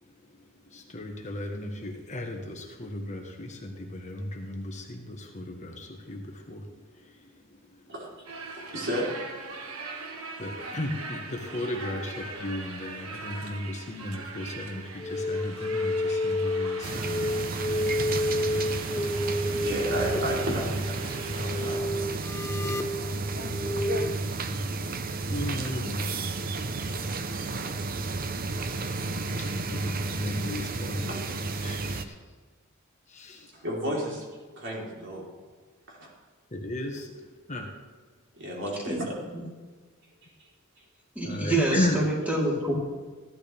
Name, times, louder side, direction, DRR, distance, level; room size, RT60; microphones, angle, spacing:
voice 1, 0.1-6.7 6.9-7.9 9.7-9.8 10.4-17.2 22.6-22.8 23.2-23.5 25.3-26.1 27.0-27.2 29.4-32.2 33.1-33.5 36.5-37.7 41.2-42.0, left 1 dB, 35° left, 2 dB, 1.3 m, -35 dB
sound 1, 8.3-21.8, right 3 dB, 80° right, 1.4 m, -41 dB
voice 2, 8.7-9.1 19.6-22.0 27.9-28.0 31.1-31.2 33.5-34.3 34.6-35.3 35.9-36.1 38.3-39.1, equal, 60° right, -4 dB, 3.7 m, -33 dB
sound 2, 15.0-24.2, left 1 dB, 15° left, 0.3 m, -30 dB
sound 3, 16.8-32.0, right 3 dB, 45° right, 0.7 m, -32 dB
voice 3, 41.2-42.8, right 1 dB, 10° right, -5 dB, 3.6 m, -26 dB
15.0 x 11.5 x 3.4 m, 1.4 s
head